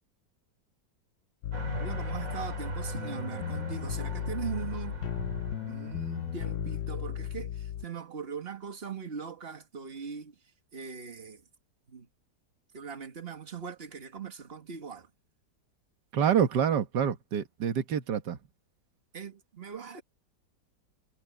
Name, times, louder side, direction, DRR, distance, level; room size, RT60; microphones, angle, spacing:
sound 1, 1.4-7.8, left 11 dB, 70° left, 1.2 m, -36 dB
sound 2, 1.5-6.8, right 3 dB, 50° right, 2.8 m, -39 dB
voice 1, 1.8-5.0 5.7-10.4 10.7-11.4 11.9-12.1 12.7-15.1 19.1-20.0, right 6 dB, 35° right, 1.8 m, -40 dB
voice 2, 16.1-18.4, right 8 dB, 70° right, 1.9 m, -27 dB
omnidirectional pair, 2.0 m